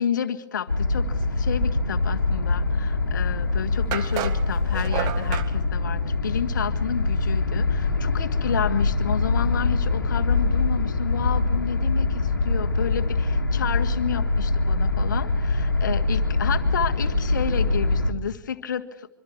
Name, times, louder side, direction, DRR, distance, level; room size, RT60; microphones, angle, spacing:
voice 1, 0.0-19.1, left 8 dB, 70° left, 9 dB, 1.7 m, -31 dB
sound 1, 0.7-18.1, left 3 dB, 90° left, 1.8 m, -24 dB
sound 2, 3.1-3.2 3.9-5.5, right 10 dB, 40° right, 1.8 m, -31 dB
25.5 x 24.0 x 4.7 m, 0.75 s
figure-of-eight pair, 100°, 11 cm